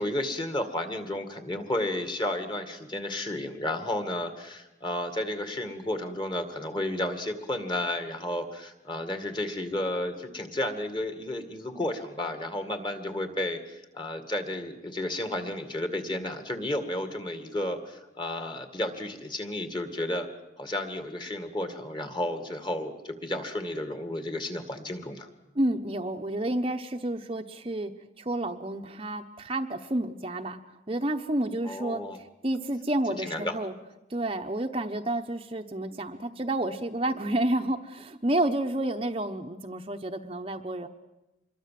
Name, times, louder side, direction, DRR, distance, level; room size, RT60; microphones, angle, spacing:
voice 1, 0.0-20.3 20.6-25.3 31.6-32.2 33.2-33.6, left 1 dB, 25° left, 7 dB, 2.1 m, -32 dB
voice 2, 25.6-27.9 28.2-30.6 30.9-32.0 32.4-33.7 34.1-40.9, right 1 dB, 30° right, 5 dB, 0.9 m, -30 dB
26.0 x 22.5 x 7.6 m, 0.98 s
head